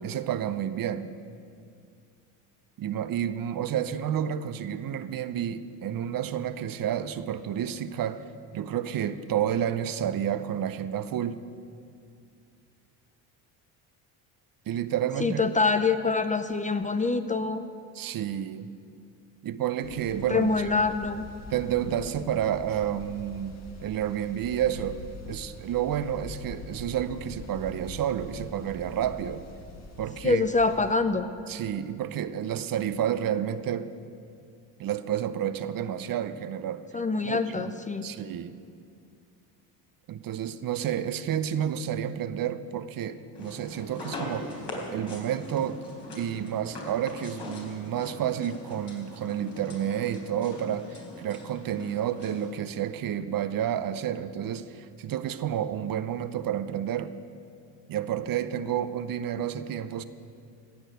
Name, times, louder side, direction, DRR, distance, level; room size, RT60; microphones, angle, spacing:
voice 1, 0.0-1.1 2.8-8.2 8.5-11.4 14.7-15.5 17.9-18.7 19.4-20.5 21.5-25.0 25.3-29.4 30.0-30.4 31.5-33.9 34.8-36.8 37.2-37.7 38.0-38.6 40.1-44.6 44.9-45.8 46.1-57.1 57.9-60.0, right 10 dB, 45° right, 12 dB, 0.7 m, -30 dB
voice 2, 15.2-17.6 20.3-21.3 30.2-31.3 36.9-38.1, left 4 dB, 15° left, 10 dB, 0.6 m, -25 dB
sound 1, 19.8-30.9, left 2 dB, 35° left, 1.7 m, -44 dB
sound 2, 43.3-52.5, left 2 dB, 60° left, 3.9 m, -41 dB
15.5 x 6.5 x 9.0 m, 2.4 s
supercardioid pair, 70°, 47 cm